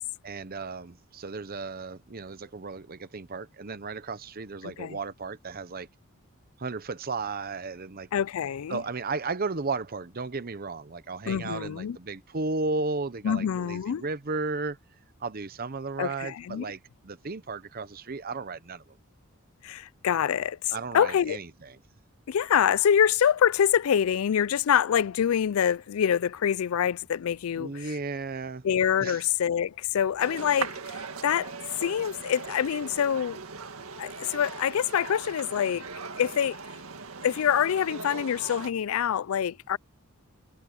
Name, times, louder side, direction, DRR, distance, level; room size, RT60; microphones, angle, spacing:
voice 1, 0.2-5.9 6.6-8.1 8.7-14.8 15.2-18.8 20.7-21.8 27.6-28.7 29.0-29.2, right 3 dB, 45° right, 0.8 m, -34 dB
voice 2, 4.6-5.0 8.1-8.8 11.3-12.0 13.2-14.0 16.0-16.6 19.6-21.4 22.3-27.9 28.6-33.4 34.0-35.8 36.2-36.6 37.2-39.8, left 8 dB, 75° left, 0.4 m, -26 dB
sound 1, 30.2-38.7, right 5 dB, 85° right, 1.9 m, -39 dB
head